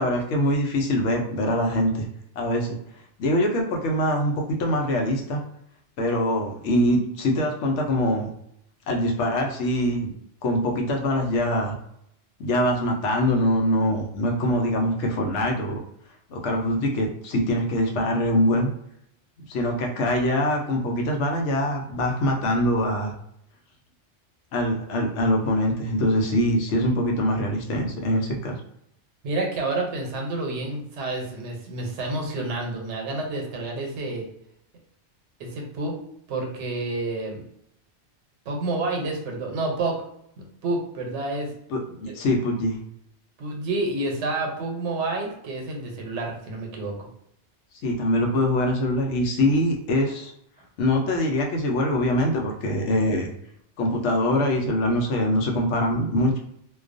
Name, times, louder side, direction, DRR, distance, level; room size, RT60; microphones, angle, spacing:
voice 1, 0.0-2.1 2.4-2.8 3.2-5.4 6.0-8.3 8.9-10.1 10.4-11.7 12.4-15.8 16.3-18.7 19.5-23.1 24.5-28.5 41.7-42.8 47.8-50.3 50.8-53.3 53.8-56.3, left 1 dB, 80° left, 1 dB, 0.9 m, -23 dB
voice 2, 29.2-34.3 35.4-36.0 36.3-37.4 38.5-40.0 40.6-41.5 42.1-42.2 43.4-47.1, right 2 dB, 80° right, 1 dB, 1.0 m, -29 dB
2.3 x 2.2 x 2.5 m, 0.75 s
omnidirectional pair, 1.2 m